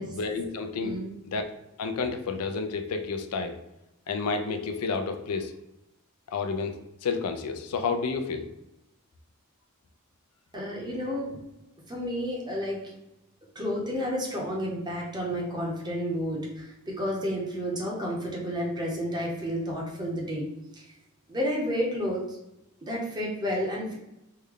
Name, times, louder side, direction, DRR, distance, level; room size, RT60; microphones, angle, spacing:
voice 1, 0.0-0.9 1.3-1.5 1.8-3.6 4.1-5.5 6.3-6.8 7.0-8.5, left 4 dB, 90° left, 7 dB, 0.4 m, -30 dB
voice 2, 0.8-1.2 10.5-11.4 11.9-12.9 13.5-20.5 20.8-20.9 21.3-22.4 22.8-24.0, equal, 20° right, -3 dB, 0.8 m, -31 dB
3.2 x 2.2 x 3.6 m, 0.89 s
head